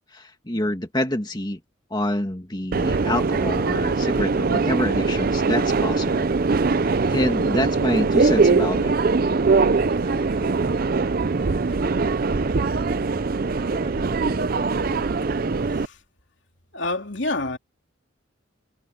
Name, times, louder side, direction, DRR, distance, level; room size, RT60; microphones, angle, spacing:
voice 1, 0.1-1.6 1.9-6.3 6.7-6.8 7.1-8.9, left 1 dB, 20° left, 2.0 m, -27 dB
Subway metro underground, 2.7-15.9, right 4 dB, 45° right, 0.5 m, -22 dB
sound 1, 4.4-15.7, equal, 25° right, 7.4 m, -39 dB
voice 2, 15.6-16.0 16.7-17.6, left 2 dB, 60° left, 3.0 m, -28 dB
head